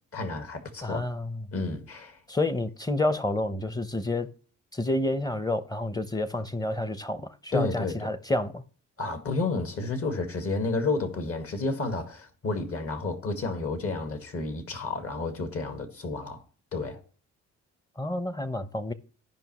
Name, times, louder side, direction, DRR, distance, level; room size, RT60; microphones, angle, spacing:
voice 1, 0.1-1.1 1.5-2.2 7.5-8.1 9.0-16.4 16.7-17.0, left 3 dB, 50° left, 1.8 m, -31 dB
voice 2, 0.8-1.5 2.3-4.3 4.7-8.6 18.0-18.9, left 2 dB, 15° left, 0.7 m, -29 dB
15.0 x 5.4 x 3.0 m
cardioid pair, 90°, 30 cm